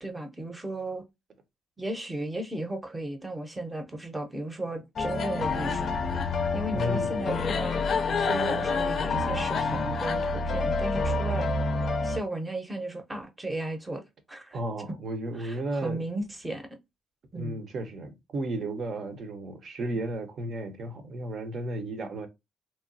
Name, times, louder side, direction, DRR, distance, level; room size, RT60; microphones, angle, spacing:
voice 1, 0.0-1.0 1.8-6.0 6.5-7.8 8.2-11.5 12.0-14.0 14.3-14.6 15.4-16.7 17.3-17.6, right 1 dB, 15° right, 0.7 m, -35 dB
sound 1, 5.0-12.2, left 3 dB, 55° left, 0.4 m, -28 dB
voice 2, 6.7-7.1 14.5-16.0 17.3-22.3, right 1 dB, 55° right, 0.7 m, -33 dB
2.9 x 2.2 x 2.5 m
cardioid pair, 90°, 0 cm